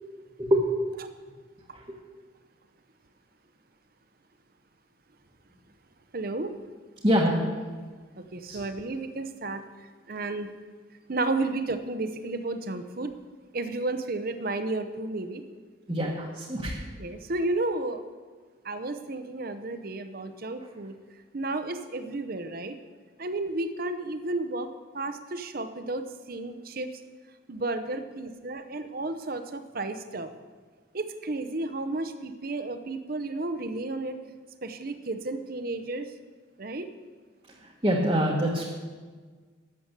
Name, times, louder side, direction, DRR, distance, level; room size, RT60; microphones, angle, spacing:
voice 1, 6.1-6.5 8.2-9.6 10.1-10.5 11.1-13.1 13.5-15.4 17.0-18.0 18.6-21.0 21.3-22.8 23.2-24.7 24.9-26.9 27.5-30.3 30.9-34.2 34.6-36.1 36.6-36.9, right 2 dB, 45° right, 9 dB, 0.8 m, -32 dB
voice 2, 7.0-7.4 8.5-8.6 15.9-16.7 37.8-38.7, equal, 25° right, -3 dB, 1.2 m, -24 dB
12.0 x 7.7 x 6.6 m, 1.5 s
head